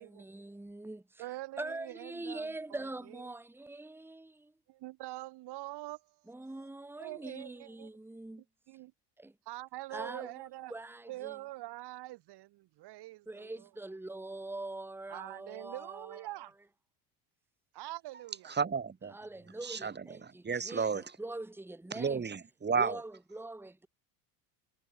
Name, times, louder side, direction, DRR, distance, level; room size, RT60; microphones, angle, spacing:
voice 1, 0.0-1.2 1.6-4.5 6.3-8.4 9.2-9.3 9.9-11.4 13.3-16.3 19.1-22.2 22.8-23.9, right 2 dB, 5° right, 1.7 m, -43 dB
voice 2, 1.2-2.5 3.1-3.3 4.7-6.7 7.0-7.9 8.7-8.9 9.4-10.7 11.1-13.7 15.1-16.5 17.7-18.5, right 17 dB, 55° right, 1.6 m, -44 dB
voice 3, 18.5-19.1 19.6-21.0 21.9-23.0, right 5 dB, 20° right, 1.9 m, -32 dB
hypercardioid pair, 75°, 48 cm